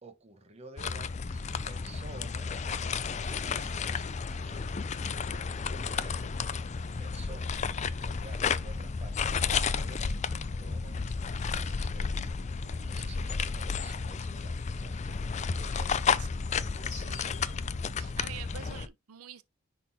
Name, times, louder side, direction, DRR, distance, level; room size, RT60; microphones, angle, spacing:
voice 1, 0.0-4.7 5.1-6.2 7.0-10.2 10.6-12.3 12.8-15.3 15.6-16.1 16.5-17.2, right 3 dB, 30° right, 1.1 m, -52 dB
sound 1, 0.8-18.9, left 5 dB, 30° left, 0.4 m, -32 dB
voice 2, 12.6-13.0 16.2-16.3 16.9-17.5 18.0-19.4, right 9 dB, 85° right, 0.6 m, -47 dB
9.9 x 3.9 x 2.7 m
head